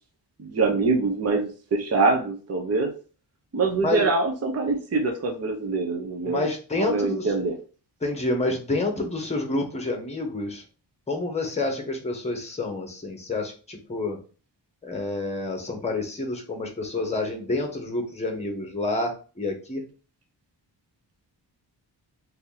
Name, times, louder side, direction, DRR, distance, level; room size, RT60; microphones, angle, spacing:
voice 1, 0.4-2.9 3.5-6.4 6.8-7.5, right 3 dB, 35° right, 3 dB, 0.7 m, -24 dB
voice 2, 6.2-7.3 8.0-10.6 11.1-14.2 14.8-19.8, left 2 dB, 15° left, 3 dB, 0.9 m, -28 dB
2.8 x 2.7 x 3.8 m, 0.36 s
wide cardioid pair, 120°, 43 cm